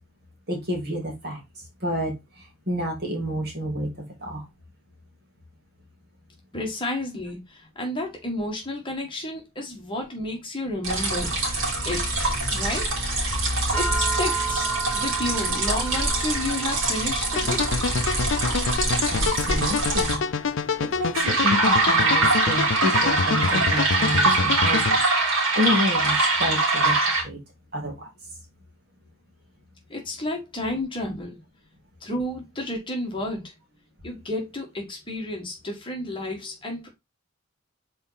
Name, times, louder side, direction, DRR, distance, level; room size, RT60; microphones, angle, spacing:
voice 1, 0.5-1.4 1.8-4.4 18.5-18.6 19.1-20.2 20.8-25.0 25.3-27.0 27.2-27.4 27.7-28.1, left 1 dB, 50° right, 2.4 m, -29 dB
voice 2, 6.5-11.3 11.8-12.9 13.7-17.9 29.9-31.4 32.0-33.5 34.0-36.9, left 1 dB, 25° left, 1.7 m, -31 dB
sound 1, 10.8-20.1 21.1-27.2, right 2 dB, 75° right, 2.4 m, -23 dB
sound 2, 13.7-24.2, right 5 dB, 5° right, 3.0 m, -35 dB
sound 3, 17.4-25.0, left 5 dB, 60° left, 0.5 m, -27 dB
5.5 x 4.2 x 4.0 m
head